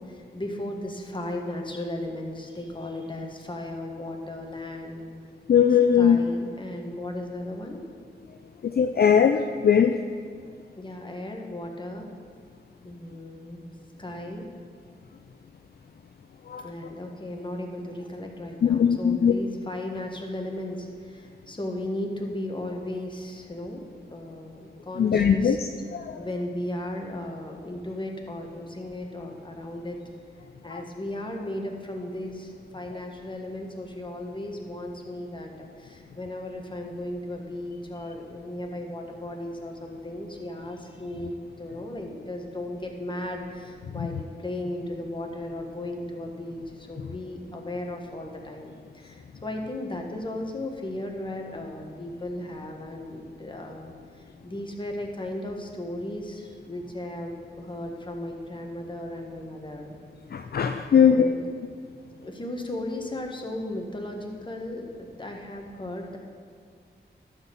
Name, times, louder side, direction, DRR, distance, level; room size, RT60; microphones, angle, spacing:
voice 1, 0.0-5.0 6.0-7.8 10.8-12.1 12.8-13.6 14.0-14.5 16.6-25.6 26.1-30.0 30.6-60.0 60.9-61.4 62.2-66.2, left 1 dB, 25° left, 1 dB, 1.4 m, -36 dB
voice 2, 5.5-6.2 8.6-10.0 16.5-16.7 18.6-19.3 25.0-26.2 30.7-30.8 43.9-44.1 60.3-61.3, left 7 dB, 55° left, 7 dB, 0.4 m, -20 dB
12.0 x 4.4 x 7.1 m, 2.1 s
wide cardioid pair, 75°, 19 cm